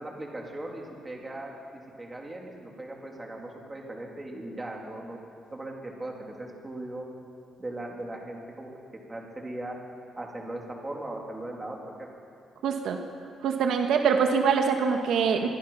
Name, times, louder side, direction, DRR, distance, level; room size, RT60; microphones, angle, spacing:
voice 1, 0.0-5.2 5.5-7.0 7.6-8.7 9.1-9.8 10.2-12.1, right 1 dB, 15° right, -1 dB, 3.6 m, -38 dB
voice 2, 12.6-13.0 13.4-15.5, right 6 dB, 75° right, 3 dB, 1.8 m, -24 dB
24.0 x 23.0 x 5.9 m, 2.4 s
cardioid pair, 130°, 0 cm